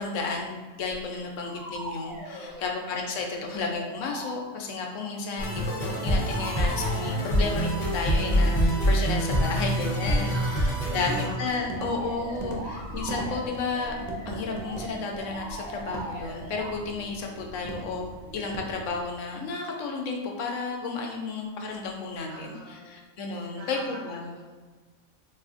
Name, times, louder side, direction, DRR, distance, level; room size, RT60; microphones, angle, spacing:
voice 1, 0.0-13.9 14.3-24.3, left 4 dB, 85° left, 1 dB, 1.0 m, -32 dB
sound 1, 0.9-1.0 1.4-2.7 3.3-4.3 5.6-7.8 11.6-16.8, right 1 dB, 45° right, 0.6 m, -39 dB
voice 2, 2.2-2.9 10.2-12.8 22.3-23.1 23.5-24.5, right 1 dB, 60° right, -4 dB, 1.0 m, -45 dB
sound 2, 5.4-11.2, equal, 50° left, 0.8 m, -25 dB
sound 3, 8.9-19.0, right 2 dB, 85° right, 0.3 m, -40 dB
4.3 x 2.4 x 2.4 m, 1.3 s
omnidirectional pair, 1.3 m